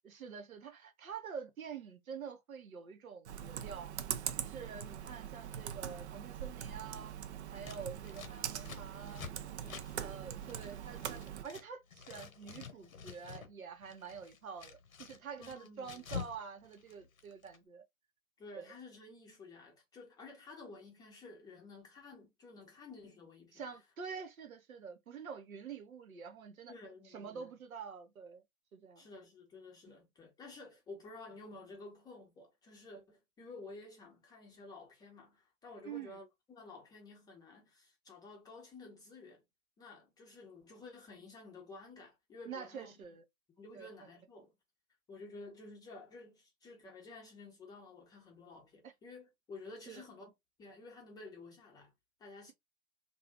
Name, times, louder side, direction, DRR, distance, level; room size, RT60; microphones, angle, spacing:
voice 1, 0.0-3.9 4.4-7.1 7.5-9.2 10.0-17.8 18.6-18.7 23.5-26.7 27.0-28.4 28.7-29.1 29.9-30.0 35.8-36.2 42.5-43.2 43.7-44.1 48.8-48.9 49.9-50.0, right 6 dB, 80° right, 0.9 m, -47 dB
Computer keyboard, 3.2-11.4, right 9 dB, 55° right, 0.5 m, -42 dB
Scissors, 7.6-11.7 11.9-13.5 13.8-16.4 16.6-17.6, left 6 dB, 75° left, 1.0 m, -48 dB
voice 2, 9.6-10.1 15.4-16.0 18.4-23.6 26.7-27.5 29.0-39.4 39.8-43.0 43.6-44.5 45.1-50.3 50.6-51.9 52.2-52.5, left 3 dB, 10° left, 0.6 m, -52 dB
2.6 x 2.4 x 3.2 m
hypercardioid pair, 125°, 41 cm